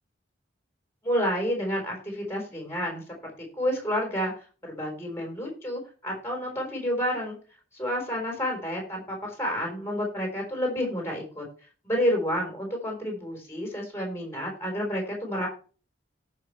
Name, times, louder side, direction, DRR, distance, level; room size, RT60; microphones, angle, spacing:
voice 1, 1.0-3.0 3.5-4.3 4.6-7.4 7.7-11.5 11.8-15.5, equal, 15° left, -1 dB, 4.0 m, -29 dB
17.5 x 5.9 x 3.2 m, 0.38 s
head